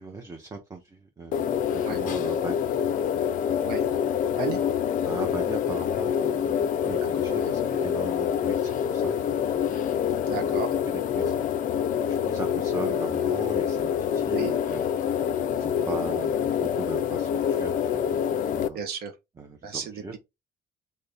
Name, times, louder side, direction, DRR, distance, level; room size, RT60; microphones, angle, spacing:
voice 1, 0.0-2.7 5.0-9.2 9.4-9.8 10.4-10.6 10.9-11.3 12.1-14.8 15.5-18.0 18.3-18.8 19.4-20.1, right 3 dB, 20° right, 0.6 m, -39 dB
sound 1, 1.3-18.7, left 8 dB, 50° left, 0.4 m, -26 dB
voice 2, 4.3-4.6 7.3-7.5 10.1-10.8 14.3-14.6 18.7-19.1 19.6-20.2, right 5 dB, 65° right, 0.7 m, -34 dB
2.7 x 2.6 x 3.3 m
cardioid pair, 110°, 17 cm